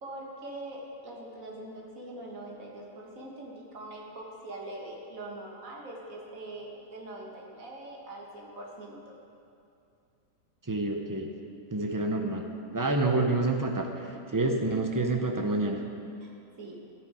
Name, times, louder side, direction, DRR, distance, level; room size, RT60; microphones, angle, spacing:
voice 1, 0.0-9.2 14.5-14.6 16.2-16.3 16.6-16.8, right 1 dB, 55° right, -2 dB, 2.0 m, -43 dB
voice 2, 10.7-11.3 11.7-12.4 12.7-13.9 14.3-15.8, right 2 dB, 20° right, 2 dB, 0.5 m, -27 dB
13.5 x 9.2 x 5.0 m, 2.6 s
omnidirectional pair, 1.7 m